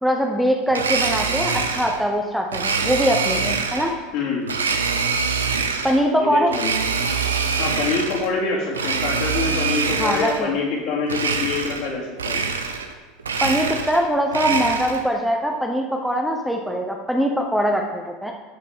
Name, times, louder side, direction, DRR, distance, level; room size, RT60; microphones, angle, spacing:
voice 1, 0.0-3.9 5.8-6.5 10.0-10.5 13.4-18.3, equal, ahead, 1 dB, 0.9 m, -22 dB
Domestic sounds home sounds, 0.7-2.0 2.5-3.9 4.5-6.0 6.5-8.3 8.7-10.5 11.1-11.9 12.2-12.9 13.2-15.1, right 5 dB, 80° right, 0.8 m, -24 dB
voice 2, 4.1-4.5 6.2-6.8 7.6-12.4, left 4 dB, 55° left, -4 dB, 2.9 m, -25 dB
12.0 x 6.3 x 3.7 m, 1.2 s
figure-of-eight pair, 75°, 0 cm